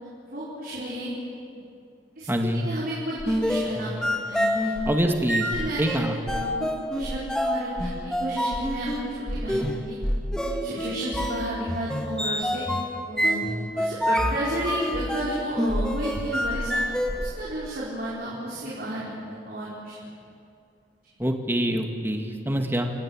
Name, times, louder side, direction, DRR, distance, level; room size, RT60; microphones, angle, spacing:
voice 1, 0.3-1.1 2.2-4.7 5.5-6.7 6.9-9.6 9.9-10.0 10.4-12.7 13.1-13.4 13.7-16.8 17.2-20.0, right 1 dB, 55° right, -6 dB, 4.7 m, -32 dB
voice 2, 2.3-2.7 4.9-5.5 5.8-6.2 21.2-22.9, equal, 15° right, 4 dB, 2.1 m, -25 dB
sound 1, 3.2-17.5, equal, 5° left, 1.8 m, -28 dB
29.0 x 16.5 x 8.8 m, 2.4 s
head